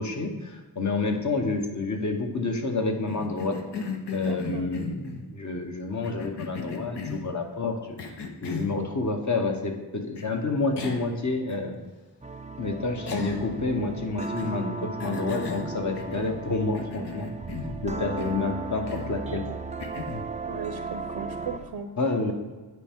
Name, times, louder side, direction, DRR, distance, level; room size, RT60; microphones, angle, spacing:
voice 1, 0.0-3.6 4.1-8.2 8.4-11.8 12.6-17.3 17.8-19.5 22.0-22.3, left 3 dB, 45° left, 3 dB, 1.1 m, -29 dB
Cough, 3.1-5.3 6.0-7.3 8.0-8.8 10.2-10.3 10.8-11.1 11.5-11.6 13.1-13.6 14.2-14.6 15.0-16.4 16.7-17.8 18.2-18.5 18.9-19.2 19.8-20.3, left 5 dB, 75° left, 0.9 m, -36 dB
voice 2, 4.1-4.7 20.4-21.9 22.3-22.4, right 6 dB, 70° right, 7 dB, 0.7 m, -37 dB
sound 1, 12.2-21.7, right 4 dB, 20° right, 0.4 m, -36 dB
9.9 x 4.6 x 3.6 m, 1.3 s
wide cardioid pair, 75°, 41 cm